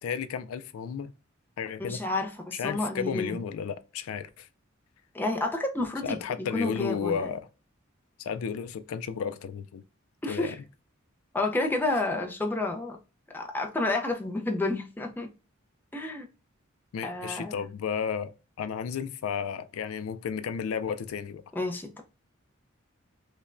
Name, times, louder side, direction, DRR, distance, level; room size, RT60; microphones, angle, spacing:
voice 1, 0.0-1.1 1.6-2.0 2.5-4.5 6.0-7.5 8.2-9.8 10.3-10.6 16.9-21.4, left 7 dB, 90° left, 0.4 m, -33 dB
voice 2, 1.8-3.4 5.1-7.3 10.2-10.5 11.3-13.0 13.3-15.3 15.9-16.3 17.0-17.6 21.6-22.0, left 2 dB, 10° left, 0.4 m, -30 dB
5.2 x 2.2 x 2.4 m
head